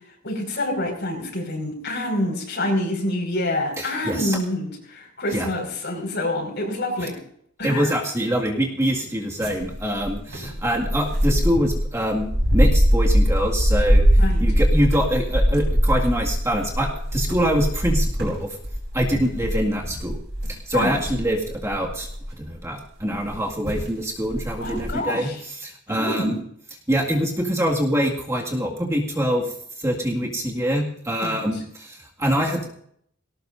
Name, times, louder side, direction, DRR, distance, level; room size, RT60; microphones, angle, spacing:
voice 1, 0.2-7.2 7.6-7.9 14.2-14.4 20.7-21.0 24.6-25.4 25.9-26.3 31.2-31.4, left 1 dB, 55° left, 2 dB, 5.4 m, -27 dB
voice 2, 3.8-4.4 5.3-5.5 7.6-18.6 18.9-20.2 20.5-26.4 26.9-32.7, equal, 15° right, -1 dB, 2.1 m, -24 dB
sound 1, 9.4-22.5 23.2-23.4 23.7-23.9 24.3-24.9, equal, 55° right, 5.7 m, -22 dB
19.5 x 18.0 x 2.7 m, 0.66 s
head